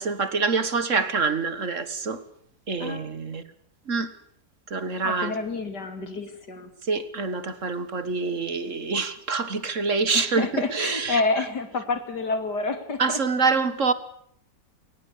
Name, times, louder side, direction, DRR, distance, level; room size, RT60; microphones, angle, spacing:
voice 1, 0.0-2.2 2.7-3.4 3.9-4.1 4.7-5.4 6.8-11.2 13.0-13.9, right 4 dB, 50° right, 1.9 m, -26 dB
voice 2, 5.0-6.7 10.1-13.2, left 3 dB, 85° left, 3.5 m, -28 dB
20.5 x 20.0 x 8.5 m
omnidirectional pair, 1.7 m